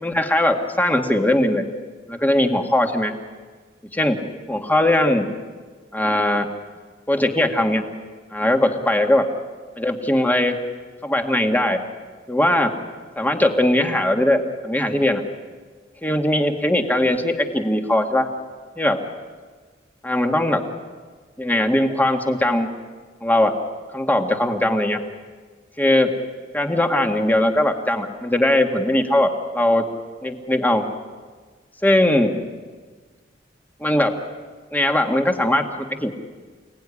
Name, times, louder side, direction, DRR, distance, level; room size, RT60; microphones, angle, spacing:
voice 1, 0.0-1.6 2.1-3.1 3.9-4.2 4.5-5.3 5.9-6.5 7.1-7.8 8.3-9.3 9.8-10.6 11.0-11.8 12.3-12.7 13.2-15.2 16.0-18.3 18.8-19.0 20.0-20.6 21.4-22.7 23.2-23.6 23.9-25.0 25.8-26.1 26.5-29.9 30.2-30.9 31.8-32.4 33.8-34.2 34.7-36.1, left 1 dB, 10° left, 4 dB, 2.0 m, -20 dB
28.5 x 18.5 x 10.0 m, 1.5 s
head